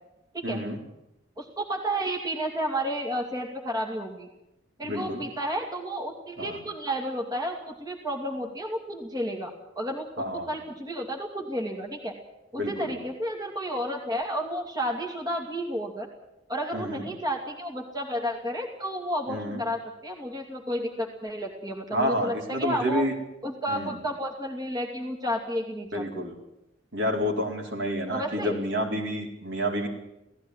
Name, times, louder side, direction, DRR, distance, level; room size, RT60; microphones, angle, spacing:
voice 1, 0.4-0.8 4.8-5.2 6.4-6.6 10.2-10.5 12.5-12.9 16.7-17.1 19.3-19.6 21.9-23.1 23.7-24.0 25.9-26.3 26.9-29.9, equal, 65° right, 1 dB, 4.2 m, -29 dB
voice 2, 1.4-4.3 4.8-12.1 12.5-16.1 16.5-23.0 23.4-26.3 28.1-28.6, equal, 20° right, 1 dB, 2.6 m, -32 dB
17.5 x 15.5 x 9.8 m, 0.87 s
head